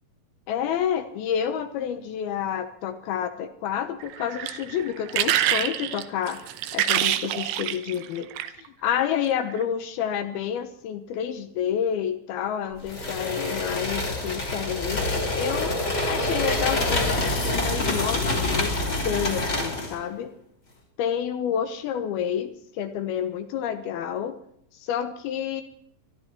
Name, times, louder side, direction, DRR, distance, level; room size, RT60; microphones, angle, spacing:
voice 1, 0.5-6.4 6.7-8.3 8.8-15.7 16.0-20.3 21.0-24.3 24.7-25.6, left 9 dB, 75° left, 9 dB, 2.8 m, -29 dB
sound 1, 4.0-8.7 9.4-9.6, right 12 dB, 85° right, 2.9 m, -26 dB
sound 2, 12.9-20.0, left 2 dB, 30° left, 2.8 m, -26 dB
21.0 x 13.0 x 4.4 m, 0.71 s
omnidirectional pair, 4.6 m